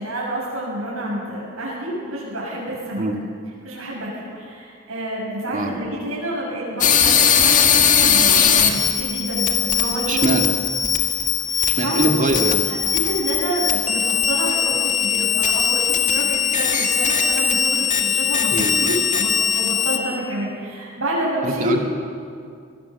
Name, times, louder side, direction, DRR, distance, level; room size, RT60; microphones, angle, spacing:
voice 1, 0.0-3.0 3.6-10.4 11.5-12.0 12.7-21.8, right 1 dB, 90° right, -6 dB, 7.1 m, -28 dB
sound 1, 6.8-20.0, left 8 dB, 40° left, 1.9 m, -19 dB
voice 2, 10.1-10.5 11.6-12.6 18.5-18.9 21.4-21.8, right 2 dB, 40° right, 3 dB, 2.2 m, -22 dB
23.5 x 18.5 x 7.1 m, 2.3 s
head